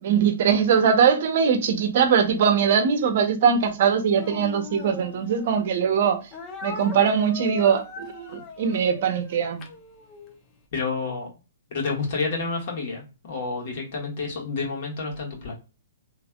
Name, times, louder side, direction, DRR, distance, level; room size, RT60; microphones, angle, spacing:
voice 1, 0.0-6.2 6.6-9.6, right 7 dB, 55° right, 0.8 m, -21 dB
Speech, 4.1-5.7 6.3-10.3, left 4 dB, 25° left, 0.7 m, -39 dB
voice 2, 10.7-11.3 11.7-15.5, left 4 dB, 50° left, 1.6 m, -29 dB
3.4 x 3.1 x 2.3 m
hypercardioid pair, 130°, 0 cm